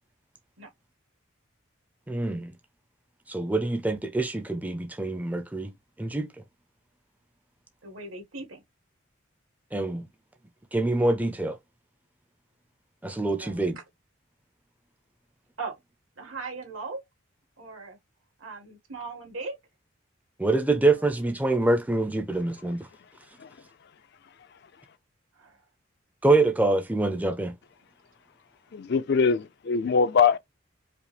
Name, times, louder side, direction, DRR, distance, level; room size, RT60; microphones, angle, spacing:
voice 1, 2.1-2.5 3.3-5.7 6.0-6.3 9.7-10.0 10.7-11.6 13.0-13.8 20.4-22.8 26.2-27.5, right 2 dB, 10° right, 0.4 m, -25 dB
voice 2, 7.8-8.6 13.4-13.7 15.6-15.7 16.2-17.0 17.6-18.0 18.4-19.6 20.9-21.1 25.4-25.6, right 3 dB, 80° right, 1.7 m, -38 dB
voice 3, 28.7-30.4, left 5 dB, 55° left, 0.4 m, -22 dB
4.9 x 2.0 x 3.2 m
head